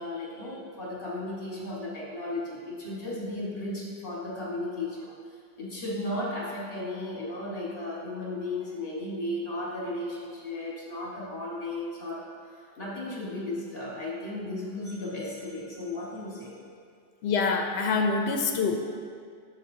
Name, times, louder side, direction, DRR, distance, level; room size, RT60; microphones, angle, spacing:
voice 1, 0.0-5.1 5.6-12.2 12.5-16.6, left 1 dB, 60° left, -5 dB, 1.9 m, -35 dB
voice 2, 17.2-18.8, left 4 dB, 75° left, 4 dB, 0.9 m, -25 dB
10.0 x 6.5 x 2.8 m, 2.2 s
omnidirectional pair, 1.1 m